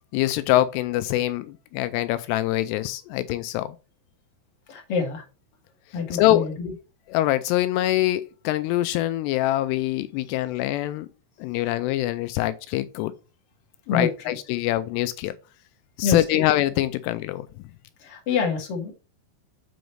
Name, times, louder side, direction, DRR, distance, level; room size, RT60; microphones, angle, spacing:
voice 1, 0.1-3.8 6.1-6.5 7.1-11.1 11.4-13.1 13.9-15.3 16.0-17.5, left 15 dB, 85° left, 2.5 m, -24 dB
voice 2, 4.7-5.2 5.9-6.7 13.9-14.4 16.0-16.4 18.0-18.9, left 5 dB, 60° left, 1.5 m, -27 dB
7.8 x 5.2 x 3.1 m
omnidirectional pair, 5.2 m